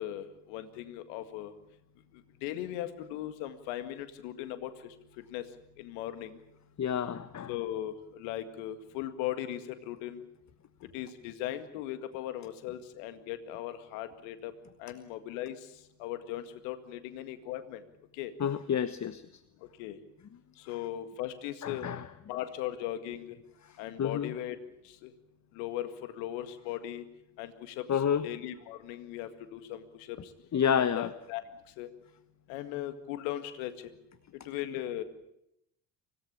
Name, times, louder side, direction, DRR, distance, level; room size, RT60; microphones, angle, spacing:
voice 1, 0.0-1.5 2.4-4.7 5.3-5.4 5.8-6.4 7.5-10.2 10.9-14.5 14.8-15.6 16.0-17.8 18.2-18.3 19.8-20.0 20.7-21.9 22.3-23.4 23.8-24.6 25.0-25.1 25.6-27.1 27.4-30.2 30.8-31.4 31.8-31.9 32.5-33.7 34.5-35.0, left 12 dB, 75° left, 10 dB, 2.1 m, -38 dB
voice 2, 6.8-7.5 18.4-19.2 21.6-22.0 24.0-24.3 27.9-28.2 30.5-31.1, left 8 dB, 35° left, 14 dB, 1.2 m, -29 dB
25.0 x 17.5 x 8.4 m, 0.80 s
hypercardioid pair, 50°, 48 cm